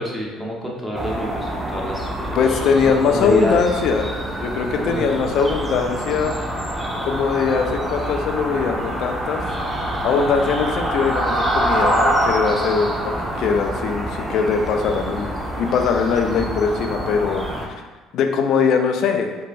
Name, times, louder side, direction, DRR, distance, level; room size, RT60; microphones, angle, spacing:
voice 1, 0.0-3.6 4.7-5.2, equal, ahead, -4 dB, 0.9 m, -28 dB
sound 1, 0.9-17.7, right 1 dB, 15° right, 0.6 m, -25 dB
voice 2, 2.4-6.3 7.0-9.4 10.0-15.3 15.6-17.7 18.1-19.4, left 5 dB, 60° left, 4 dB, 0.3 m, -21 dB
4.3 x 2.2 x 2.6 m, 1.3 s
hypercardioid pair, 60°, 0 cm